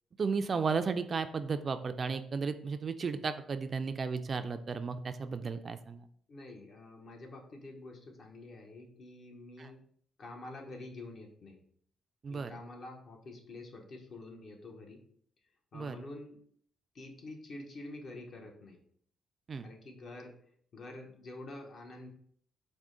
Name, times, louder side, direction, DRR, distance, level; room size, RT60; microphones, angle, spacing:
voice 1, 0.2-6.0 9.6-9.7 12.2-12.5 15.7-16.0 19.5-19.7, right 5 dB, 40° right, 9 dB, 0.3 m, -34 dB
voice 2, 6.3-9.8 10.2-11.6 12.3-15.0 15.7-16.4 16.9-18.8 19.6-20.4 20.7-22.1, left 2 dB, 55° left, 2 dB, 0.9 m, -47 dB
4.7 x 2.1 x 3.7 m, 0.62 s
cardioid pair, 90°, 0 cm